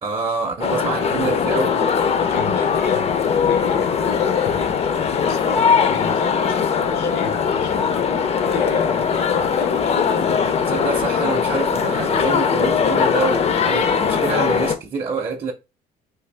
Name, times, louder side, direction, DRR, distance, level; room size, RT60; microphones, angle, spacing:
voice 1, 0.0-1.8 10.7-15.5, right 4 dB, 30° right, 0.5 m, -26 dB
sound 1, 0.6-14.8, left 6 dB, 40° left, 0.4 m, -20 dB
voice 2, 2.2-10.1, left 6 dB, 80° left, 0.9 m, -29 dB
3.4 x 2.3 x 3.2 m
cardioid pair, 110°, 17 cm